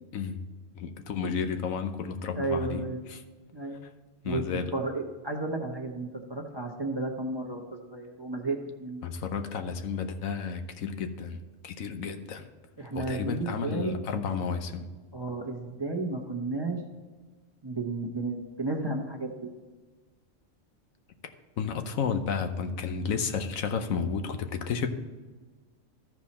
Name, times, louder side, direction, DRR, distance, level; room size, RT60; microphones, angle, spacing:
voice 1, 0.8-3.2 4.2-4.7 9.0-12.4 12.9-14.9 21.6-24.9, left 6 dB, 85° left, 7 dB, 1.2 m, -32 dB
voice 2, 2.3-3.0 3.5-3.8 4.2-4.4 4.7-9.0 12.8-14.0 15.1-16.8 17.6-19.5, right 2 dB, 20° right, 0 dB, 1.0 m, -33 dB
14.0 x 4.7 x 4.2 m, 1.3 s
omnidirectional pair, 1.4 m